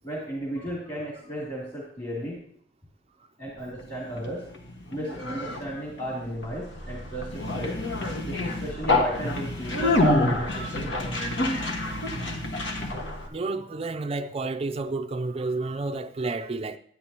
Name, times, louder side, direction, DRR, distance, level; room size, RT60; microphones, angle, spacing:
voice 1, 0.0-2.4 3.4-4.4 4.9-7.8 8.3-10.9, right 1 dB, 30° left, 2.8 m, -35 dB
Conversation, 3.8-13.3, left 2 dB, 75° left, 1.5 m, -28 dB
voice 2, 10.4-10.8 11.2-11.5 13.2-16.8, right 3 dB, 35° right, 0.4 m, -31 dB
12.0 x 9.5 x 2.9 m
head